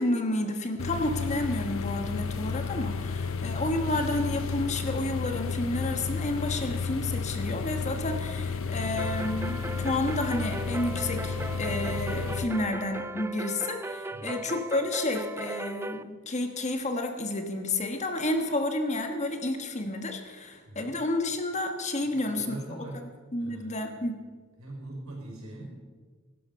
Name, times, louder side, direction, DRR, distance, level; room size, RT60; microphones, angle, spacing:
voice 1, 0.0-22.8 23.3-24.2, left 2 dB, 35° left, 5 dB, 1.3 m, -30 dB
sound 1, 0.8-12.4, left 5 dB, 65° left, 0.8 m, -32 dB
sound 2, 9.0-16.0, right 2 dB, 10° right, 0.3 m, -38 dB
voice 2, 14.1-14.4 20.7-20.9 22.0-23.0 23.4-23.8 24.6-25.8, right 1 dB, 80° right, 0 dB, 5.1 m, -42 dB
16.5 x 12.0 x 5.4 m, 1.5 s
head